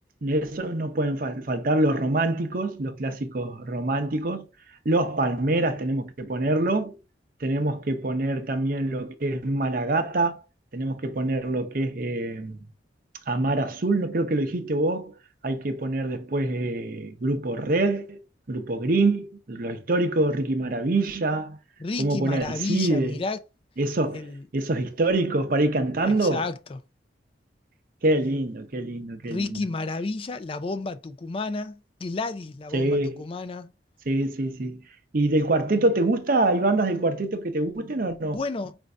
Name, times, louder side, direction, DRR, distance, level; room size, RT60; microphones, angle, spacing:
voice 1, 0.2-4.5 4.8-7.0 7.4-10.4 10.7-12.7 13.3-15.1 15.4-18.2 18.5-21.6 22.0-23.2 23.8-24.3 24.5-26.4 28.0-29.6 32.7-33.2 34.1-34.8 35.1-38.4, right 2 dB, 50° right, 0.7 m, -25 dB
voice 2, 21.8-23.4 24.1-24.4 26.0-26.8 29.3-33.7 38.3-38.8, left 3 dB, 30° left, 0.4 m, -31 dB
5.1 x 2.6 x 3.3 m
head